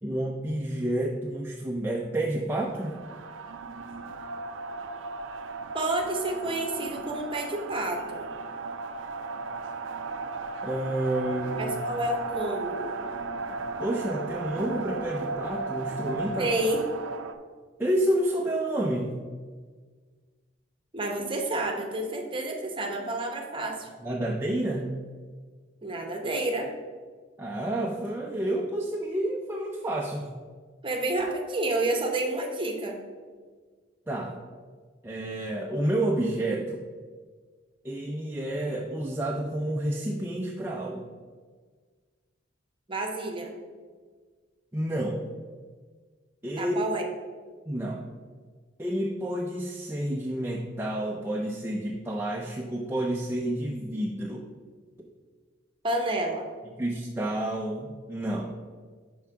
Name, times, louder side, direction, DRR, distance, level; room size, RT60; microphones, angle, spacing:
voice 1, 0.0-2.9 10.6-11.7 13.8-16.5 17.8-19.2 24.0-25.0 27.4-30.3 34.1-34.4 35.0-36.8 37.8-41.1 44.7-45.2 46.4-46.8 47.7-48.0 48.8-54.4 56.8-58.5, right 1 dB, 10° right, -1 dB, 0.4 m, -29 dB
sound 1, 2.7-17.3, right 3 dB, 85° right, 0.5 m, -35 dB
voice 2, 5.7-8.3 11.6-12.9 16.4-16.8 20.9-23.9 25.8-26.7 30.8-33.0 42.9-43.5 46.6-47.0 55.8-56.5, right 2 dB, 25° right, 2 dB, 0.9 m, -29 dB
5.7 x 4.6 x 5.7 m, 1.6 s
head